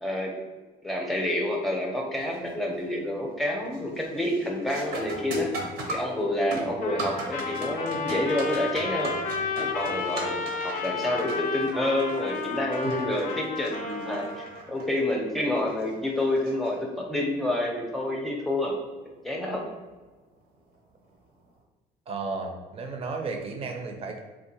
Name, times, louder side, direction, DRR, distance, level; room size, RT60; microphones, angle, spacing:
voice 1, 0.0-0.3 0.8-5.5 5.9-9.1 9.6-10.4 10.6-18.7 19.2-19.6, left 1 dB, ahead, -1 dB, 0.7 m, -28 dB
sound 1, 2.2-2.5 3.0-3.4 3.7-17.2 19.8-19.9 20.7-20.9, right 1 dB, 70° right, 0.8 m, -39 dB
Trumpet, 6.8-14.6, left 4 dB, 50° left, 0.5 m, -32 dB
voice 2, 22.1-24.2, right 4 dB, 35° right, 3 dB, 0.6 m, -34 dB
3.6 x 2.4 x 2.8 m, 1.2 s
cardioid pair, 110°, 17 cm